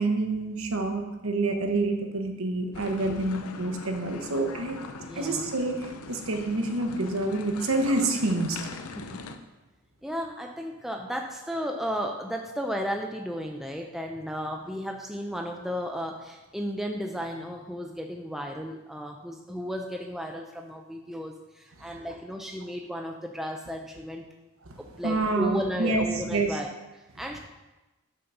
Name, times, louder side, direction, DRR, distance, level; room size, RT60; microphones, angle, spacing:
voice 1, 0.0-4.8 5.2-8.6 25.0-26.6, right 2 dB, 65° right, 4 dB, 0.9 m, -27 dB
sound 1, 2.7-9.4, left 4 dB, 80° left, 0.5 m, -41 dB
voice 2, 5.1-5.5 9.0-9.2 10.0-24.3 24.8-27.4, equal, ahead, 2 dB, 0.4 m, -34 dB
6.4 x 4.0 x 5.9 m, 1.1 s
head